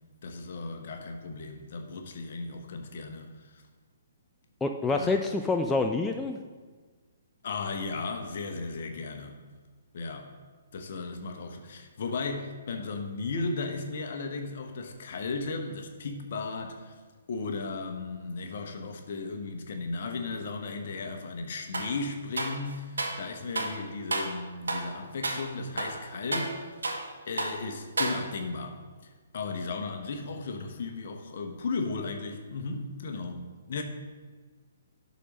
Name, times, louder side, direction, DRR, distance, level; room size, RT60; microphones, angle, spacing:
voice 1, 0.2-3.5 4.9-5.2 7.4-9.4 9.9-10.3 10.7-16.9 17.3-26.7 27.3-33.8, left 3 dB, 45° left, 4 dB, 1.0 m, -35 dB
voice 2, 4.6-6.4, left 3 dB, 10° left, 4 dB, 0.3 m, -27 dB
sound 1, 21.7-22.0 22.4-23.2 23.5-23.8 24.1-24.4 24.7-24.9 25.2-25.5 25.8-27.1 27.4-27.6 28.0-28.5, right 2 dB, 65° right, 1.1 m, -32 dB
11.5 x 4.2 x 5.3 m, 1.4 s
figure-of-eight pair, 125°, 0 cm